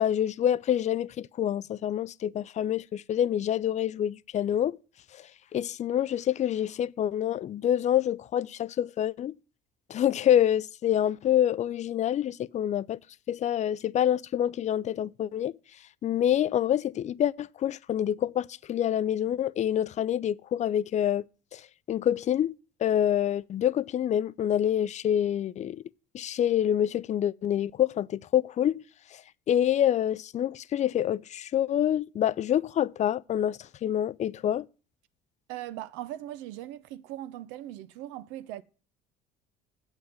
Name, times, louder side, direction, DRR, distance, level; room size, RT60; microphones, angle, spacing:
voice 1, 0.0-4.8 5.5-9.3 9.9-13.0 13.3-15.5 16.0-21.2 21.5-21.6 21.9-25.8 26.1-28.8 29.1-29.2 29.5-34.7, left 10 dB, 40° left, 0.4 m, -27 dB
voice 2, 35.5-38.6, right 13 dB, 80° right, 0.6 m, -39 dB
8.0 x 5.6 x 7.7 m
supercardioid pair, 75°, 19 cm